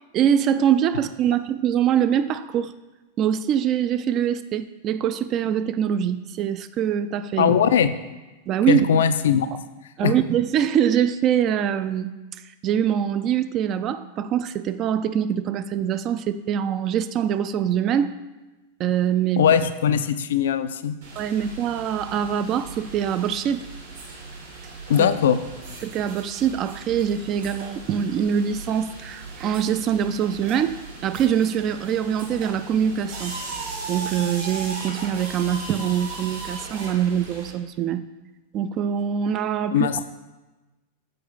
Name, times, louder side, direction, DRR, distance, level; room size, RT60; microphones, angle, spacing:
voice 1, 0.1-2.7 3.2-7.5 8.5-9.0 10.0-12.1 12.6-18.1 18.8-19.5 21.2-23.6 25.0-25.1 25.8-33.4 33.9-38.0 38.5-39.9, right 9 dB, 35° right, 12 dB, 0.3 m, -23 dB
voice 2, 7.4-7.9 8.7-9.5 10.0-10.1 19.4-21.0 24.9-25.4 39.7-40.1, left 8 dB, 60° left, 11 dB, 0.3 m, -20 dB
sound 1, 21.0-37.5, right 4 dB, 60° right, 1.6 m, -37 dB
6.6 x 4.5 x 3.9 m, 1.1 s
figure-of-eight pair, 90°, 0 cm